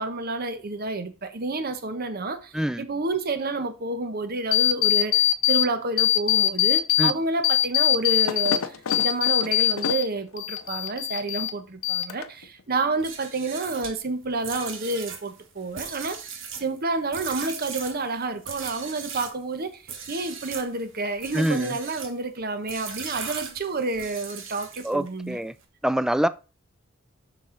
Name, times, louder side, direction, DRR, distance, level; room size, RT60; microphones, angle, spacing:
voice 1, 0.0-16.2 16.6-25.4, right 3 dB, 50° right, 1.0 m, -29 dB
sound 1, 4.5-5.7 6.0-7.1 7.4-10.1 10.4-11.5 11.8-12.4, left 13 dB, 90° left, 0.6 m, -22 dB
sound 2, 12.9-19.4 19.8-20.7 21.1-22.2 22.7-25.1, right 6 dB, 65° right, 1.6 m, -38 dB
voice 2, 21.3-21.7 24.8-25.5 25.8-26.3, right 1 dB, 5° right, 0.3 m, -25 dB
7.0 x 6.1 x 3.8 m
head